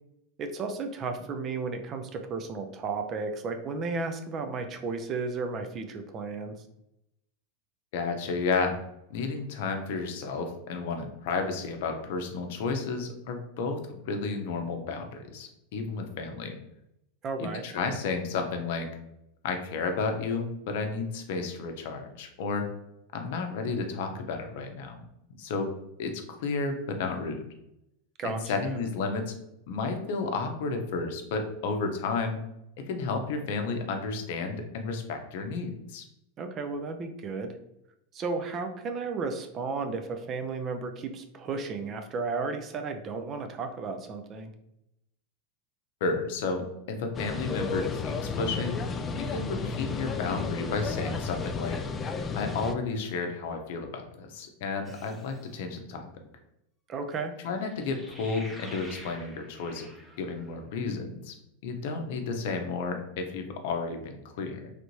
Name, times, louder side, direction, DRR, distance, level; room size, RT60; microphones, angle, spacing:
voice 1, 0.4-6.6 17.2-17.6 28.2-28.8 36.4-37.6 38.1-44.5 56.9-57.3, right 4 dB, 35° right, 7 dB, 0.4 m, -33 dB
voice 2, 7.9-8.8 9.1-16.6 17.4-18.9 19.4-22.6 23.1-25.0 25.4-25.7 26.0-27.4 28.2-29.4 29.7-32.4 32.9-36.0 46.0-46.6 46.9-48.9 49.2-51.8 52.3-56.1 57.4-59.9 60.2-61.3 61.6-64.7, left 4 dB, 65° left, 5 dB, 0.6 m, -32 dB
sound 1, 47.1-52.7, left 5 dB, 25° left, 0.3 m, -32 dB
sound 2, 54.8-55.5 57.6-60.5, equal, 5° right, 0.7 m, -48 dB
3.2 x 2.6 x 3.0 m, 0.83 s
hypercardioid pair, 100°, 0 cm